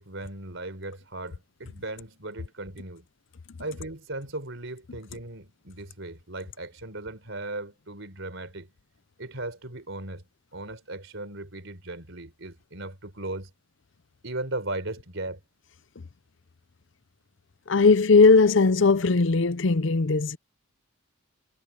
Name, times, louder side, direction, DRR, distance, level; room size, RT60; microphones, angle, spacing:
voice 1, 0.0-3.1 3.6-8.7 9.2-10.3 10.5-13.5 14.2-15.4, right 2 dB, 60° right, 4.1 m, -37 dB
voice 2, 17.7-20.4, left 4 dB, 55° left, 0.6 m, -19 dB
head